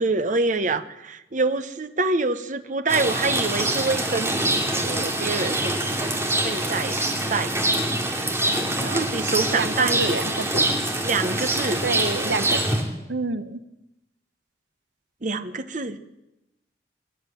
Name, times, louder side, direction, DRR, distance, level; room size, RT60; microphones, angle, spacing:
voice 1, 0.0-5.8 6.4-7.0 7.3-7.8 8.8-10.3 11.0-11.8 15.2-16.0, right 3 dB, 45° right, 10 dB, 1.1 m, -26 dB
Rain, 2.9-12.8, right 1 dB, 15° right, 2.9 m, -25 dB
voice 2, 9.5-10.6 11.8-12.6 13.1-13.6, right 3 dB, 85° right, 12 dB, 1.1 m, -28 dB
24.0 x 12.0 x 9.2 m, 0.91 s
head